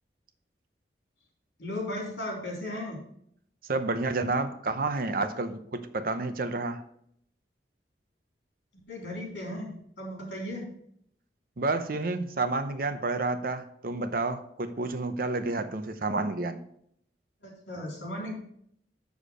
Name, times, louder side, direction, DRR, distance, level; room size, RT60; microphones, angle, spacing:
voice 1, 1.6-3.0 8.9-10.7 17.4-18.3, left 1 dB, 80° left, -1 dB, 3.5 m, -36 dB
voice 2, 3.7-6.8 11.6-16.6, right 3 dB, 55° right, 10 dB, 0.7 m, -30 dB
7.2 x 6.7 x 5.1 m, 0.68 s
head